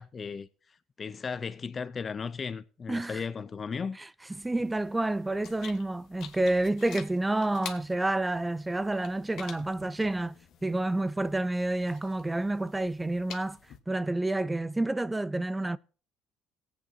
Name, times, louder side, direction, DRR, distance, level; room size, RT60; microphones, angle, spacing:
voice 1, 0.0-4.0, left 5 dB, 40° left, 0.6 m, -36 dB
voice 2, 2.9-3.2 4.4-10.4 10.6-13.6 13.9-15.8, right 2 dB, 15° right, 0.5 m, -29 dB
sound 1, 4.3-13.8, left 8 dB, 65° left, 1.3 m, -49 dB
18.0 x 8.3 x 2.8 m
supercardioid pair, 75°, 0 cm